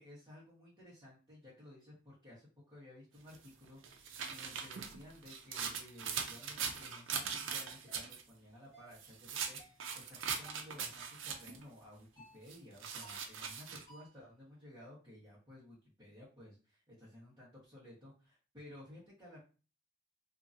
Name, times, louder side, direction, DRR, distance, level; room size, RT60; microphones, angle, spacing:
voice 1, 0.0-19.4, left 1 dB, 15° right, -10 dB, 1.1 m, -56 dB
sound 1, 3.3-8.2 8.9-11.6 12.5-13.8, right 6 dB, 75° right, 0.5 m, -41 dB
sound 2, 7.9-8.1 8.7-9.0 9.6-9.9 10.4-10.7 11.3-11.6 12.2-12.4 13.0-13.4 13.9-14.2, right 1 dB, 20° left, 1.3 m, -59 dB
2.7 x 2.5 x 2.5 m, 0.34 s
head